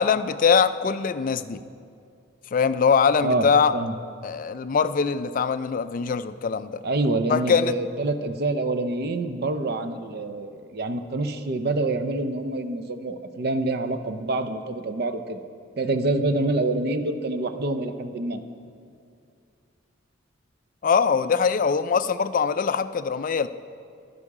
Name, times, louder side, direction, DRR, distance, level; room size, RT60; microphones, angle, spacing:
voice 1, 0.0-1.6 2.5-3.7 4.2-6.8 7.3-7.8 20.8-23.5, left 6 dB, 40° left, 12 dB, 0.3 m, -22 dB
voice 2, 6.8-15.4 15.8-18.4, right 2 dB, 50° right, 9 dB, 0.5 m, -26 dB
12.0 x 9.8 x 4.8 m, 2.4 s
head